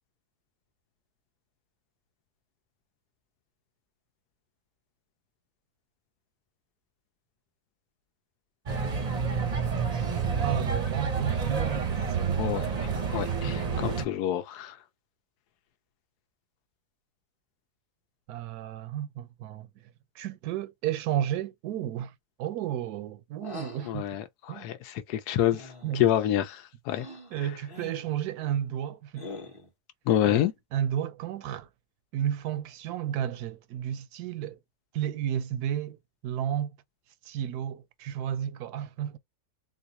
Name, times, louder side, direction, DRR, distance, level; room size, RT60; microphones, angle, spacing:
sound 1, 8.7-14.0, right 6 dB, 35° right, 0.6 m, -29 dB
voice 1, 10.4-12.3 18.3-19.7 20.1-24.1 24.5-24.7 25.8-26.0 27.3-29.3 30.3-30.4 30.7-31.7 32.1-34.6 34.9-36.0 36.2-36.7 37.2-39.2, right 10 dB, 80° right, 1.1 m, -32 dB
voice 2, 12.4-14.8 23.8-27.1 27.4-27.5 30.1-30.5, left 11 dB, 85° left, 1.2 m, -28 dB
sound 2, 23.4-23.9 25.5-26.0 26.9-27.3 27.7-28.1 29.2-29.7, left 2 dB, 25° left, 0.9 m, -43 dB
3.8 x 2.5 x 2.7 m
omnidirectional pair, 1.6 m